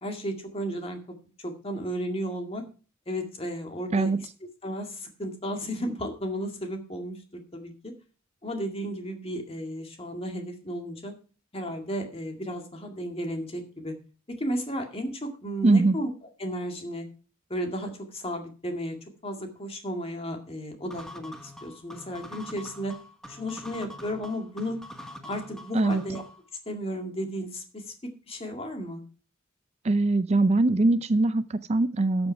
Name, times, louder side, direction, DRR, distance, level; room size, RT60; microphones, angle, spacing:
voice 1, 0.0-1.0 1.4-2.6 3.1-4.1 4.6-7.9 8.4-11.1 11.5-13.9 14.3-16.1 16.4-17.1 17.5-19.0 19.2-22.9 23.3-24.8 25.2-26.2 26.7-29.0, equal, 30° left, 4 dB, 2.1 m, -34 dB
voice 2, 15.6-16.0 25.7-26.0 29.8-32.3, right 2 dB, 30° right, 13 dB, 0.4 m, -22 dB
sound 1, 20.9-26.5, left 1 dB, 5° left, 1.2 m, -44 dB
13.0 x 7.1 x 4.5 m, 0.36 s
head